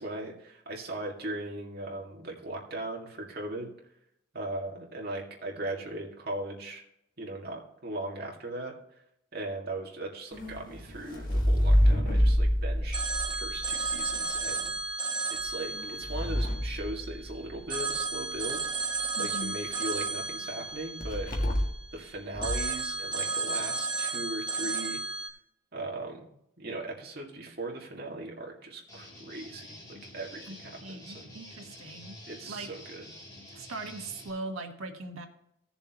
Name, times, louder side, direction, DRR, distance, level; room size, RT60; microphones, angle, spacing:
voice 1, 0.0-3.7 4.3-6.8 7.2-8.8 9.3-13.0 13.3-14.8 15.4-18.6 19.2-21.5 21.9-25.0 25.7-26.2 26.6-31.3 32.3-33.0, right 2 dB, 50° right, -1 dB, 2.0 m, -38 dB
sound 1, 10.3-14.4 15.4-17.7 21.0-21.9 22.3-22.8, equal, 40° left, 1.6 m, -27 dB
Telephone, 12.9-17.2 17.7-21.9 22.4-25.3, right 4 dB, 20° right, 1.1 m, -33 dB
voice 2, 19.2-19.5 30.5-30.6 30.8-32.2 32.5-32.7 33.5-35.3, right 2 dB, 85° right, 4 dB, 1.4 m, -40 dB
Guitar, 28.9-34.3, left 1 dB, 20° left, 2.7 m, -48 dB
16.5 x 6.9 x 2.9 m, 0.77 s
head